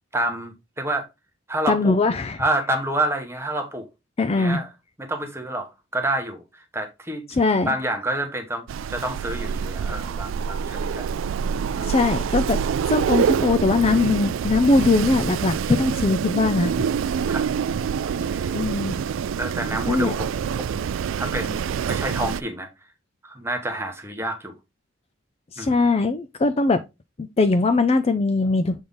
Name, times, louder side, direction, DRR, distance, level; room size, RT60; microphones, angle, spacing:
voice 1, 0.1-1.1 1.5-2.0 2.4-3.9 4.3-4.7 5.0-7.3 7.7-11.1 11.7-12.0 17.3-17.4 18.2-18.7 19.4-20.9 21.2-21.6 21.9-22.7 23.2-24.6 25.6-25.8, right 1 dB, 15° right, 1.0 m, -28 dB
voice 2, 1.7-2.4 4.2-4.6 7.3-7.7 11.8-12.6 12.9-16.7 18.5-19.0 19.9-20.1 25.5-26.8 27.2-28.8, left 3 dB, 30° left, 0.4 m, -21 dB
Wind, 8.7-22.4, right 7 dB, 75° right, 0.3 m, -26 dB
6.8 x 3.6 x 3.9 m
head